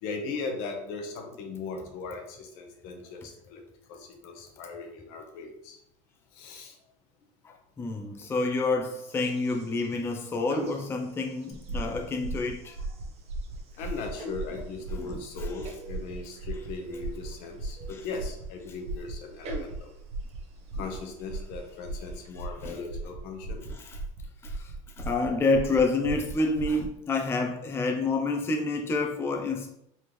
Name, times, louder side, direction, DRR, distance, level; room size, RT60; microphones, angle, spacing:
voice 1, 0.0-3.6 3.9-5.8 6.3-6.8 13.8-19.9 20.7-23.6, left 4 dB, 65° left, 3 dB, 1.0 m, -38 dB
voice 2, 7.4-12.8 15.0-15.5 17.9-18.1 20.8-20.9 22.4-22.8 23.7-24.0 24.4-29.7, left 3 dB, 15° left, 2 dB, 0.5 m, -29 dB
sound 1, 8.8-22.3, right 2 dB, 40° right, 0.9 m, -47 dB
sound 2, 11.5-26.9, right 2 dB, 70° right, 1.2 m, -37 dB
4.1 x 3.4 x 3.1 m, 0.79 s
supercardioid pair, 110°, 16 cm